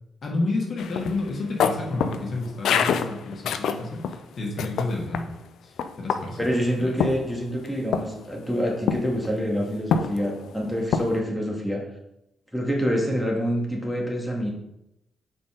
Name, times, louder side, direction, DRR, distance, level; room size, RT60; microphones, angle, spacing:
voice 1, 0.2-5.3 5.6-6.5 6.8-6.9, left 2 dB, 55° left, -1 dB, 1.7 m, -30 dB
sound 1, 0.8-4.2 4.6-5.2 5.8-6.5 7.0-7.7 7.9-8.2 8.9-9.3 9.9-10.5 10.9-11.2, left 7 dB, 75° left, 0.4 m, -26 dB
voice 2, 6.4-11.8 12.5-14.5, equal, 5° right, -1 dB, 2.1 m, -26 dB
5.3 x 4.3 x 5.1 m, 0.86 s
supercardioid pair, 55°, 0 cm